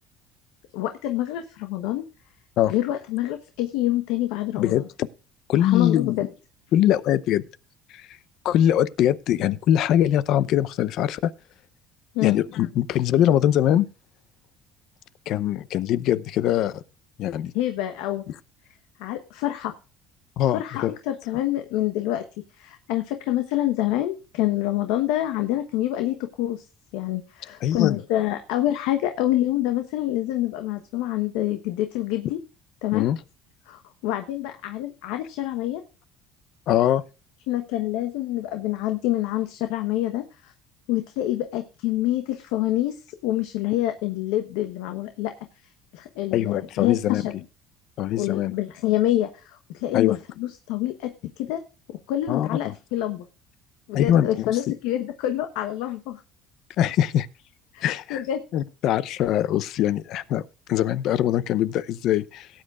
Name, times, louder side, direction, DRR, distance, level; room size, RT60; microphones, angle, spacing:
voice 1, 0.7-2.0 2.7-4.8 5.5-6.3 12.1-12.4 17.5-18.2 19.0-19.7 20.5-22.2 22.6-26.7 26.9-32.4 32.8-33.1 33.7-35.8 37.5-40.5 40.9-45.3 45.9-47.3 48.1-51.6 52.1-53.2 53.9-56.2 57.7-58.4, left 14 dB, 90° left, 1.1 m, -27 dB
voice 2, 5.5-6.3 6.7-7.4 7.9-8.1 8.4-11.3 12.2-13.9 15.3-16.8 17.2-17.5 20.4-21.0 27.6-28.0 32.9-33.2 36.7-37.0 46.3-47.2 48.0-48.6 49.9-50.2 52.3-52.7 53.9-54.7 56.8-57.3 57.8-58.2 58.5-60.4 60.7-62.5, left 11 dB, 60° left, 0.7 m, -22 dB
18.0 x 8.7 x 2.4 m
cardioid pair, 135°, 0 cm